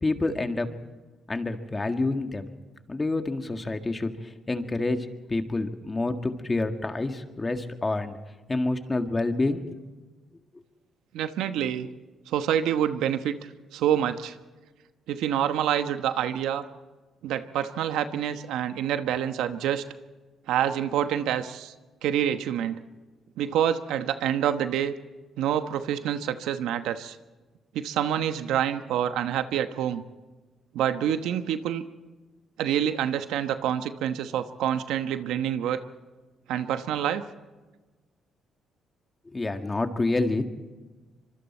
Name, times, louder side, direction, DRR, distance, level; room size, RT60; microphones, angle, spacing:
voice 1, 0.0-0.7 1.3-2.5 2.9-8.2 8.5-9.8 39.3-40.4, left 2 dB, 20° left, 6 dB, 1.9 m, -28 dB
voice 2, 11.1-11.9 12.3-13.4 13.7-14.3 15.1-16.6 17.2-19.8 20.5-21.7 22.0-22.8 23.4-24.9 25.4-27.2 27.7-30.0 30.7-31.8 32.6-35.8 36.5-37.2, right 10 dB, 90° right, 9 dB, 1.0 m, -27 dB
25.0 x 24.0 x 4.4 m, 1.2 s
cardioid pair, 90°, 0 cm